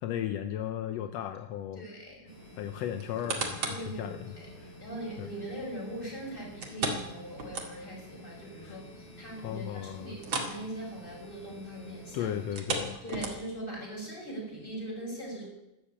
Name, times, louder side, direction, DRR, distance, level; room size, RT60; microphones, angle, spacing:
voice 1, 0.0-1.8 2.6-4.7 5.2-5.3 8.6-8.8 9.4-10.2 12.1-13.0, left 11 dB, 75° left, 9 dB, 1.6 m, -36 dB
voice 2, 1.7-2.3 3.6-4.1 4.4-4.5 4.8-12.4 13.0-15.5, right 1 dB, 15° left, -2 dB, 5.8 m, -41 dB
sound 1, 2.3-12.6, equal, 35° left, 5.8 m, -50 dB
sound 2, 3.0-3.9 4.4-4.5 6.6-8.1 8.4-8.5 8.9-9.0 10.2-10.6 10.9-11.1 12.4-13.7 14.3-14.4, right 3 dB, 40° right, 2.6 m, -34 dB
13.5 x 12.0 x 8.6 m, 0.92 s
omnidirectional pair, 3.7 m